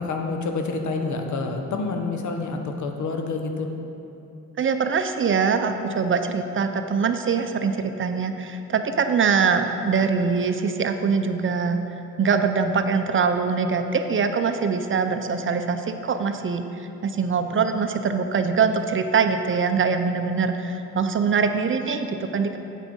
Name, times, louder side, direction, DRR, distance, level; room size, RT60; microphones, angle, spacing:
voice 1, 0.0-3.7, left 3 dB, 60° left, 4 dB, 1.0 m, -28 dB
voice 2, 4.6-11.8 12.2-22.6, right 5 dB, 40° right, 7 dB, 0.6 m, -23 dB
8.3 x 5.8 x 5.3 m, 2.9 s
supercardioid pair, 70°, 33 cm